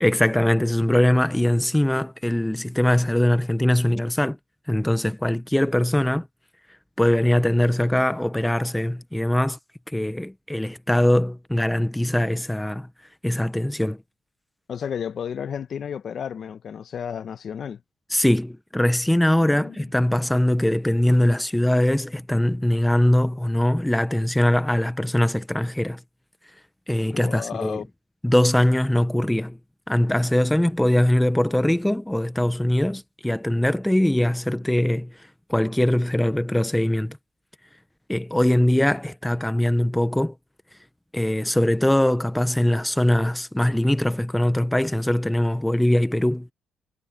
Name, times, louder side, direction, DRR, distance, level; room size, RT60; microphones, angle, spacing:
voice 1, 0.0-4.4 4.7-6.3 7.0-9.6 9.9-12.9 13.2-14.0 18.1-26.0 26.9-27.8 28.2-29.6 29.9-35.1 35.5-37.2 38.1-40.3 41.1-46.5, left 1 dB, 5° left, 0.9 m, -21 dB
voice 2, 14.7-17.8 19.3-19.8 27.1-27.9, left 8 dB, 50° left, 1.0 m, -32 dB
cardioid pair, 110°, 0 cm